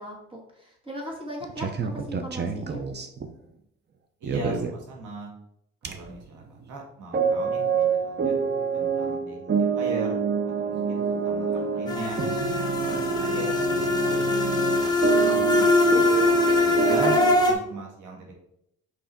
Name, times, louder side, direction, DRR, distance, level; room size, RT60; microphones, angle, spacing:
voice 1, 0.0-2.8, equal, 15° right, -2 dB, 2.4 m, -38 dB
sound 1, 1.4-3.3 4.2-4.8 5.8-6.1 6.4-6.6 7.1-17.4, right 6 dB, 35° right, 0.8 m, -27 dB
voice 2, 4.2-5.3 5.8-8.3 8.7-10.2 10.6-12.2 12.8-14.2 14.7-16.2 16.6-17.2 17.5-18.3, right 2 dB, 85° right, -1 dB, 1.8 m, -38 dB
sound 2, 11.9-17.5, left 2 dB, 15° left, 1.3 m, -22 dB
5.5 x 4.8 x 4.3 m, 0.76 s
cardioid pair, 90°, 30 cm